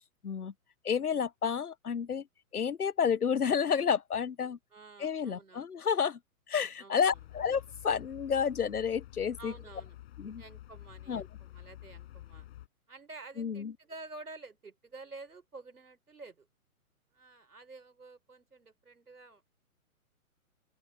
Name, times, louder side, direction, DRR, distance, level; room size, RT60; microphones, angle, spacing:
voice 1, 0.8-2.3 2.5-4.6 5.0-6.2 6.5-9.5 10.2-10.4 11.1-11.3 13.4-13.7, left 7 dB, 90° left, 0.8 m, -30 dB
voice 2, 4.7-5.7 6.8-7.2 9.4-10.0 10.4-12.5 12.9-16.5 17.1-19.5, right 3 dB, 85° right, 4.7 m, -50 dB
sound 1, 7.1-12.7, left 14 dB, 45° left, 5.0 m, -49 dB
open air
figure-of-eight pair, 125°, 44 cm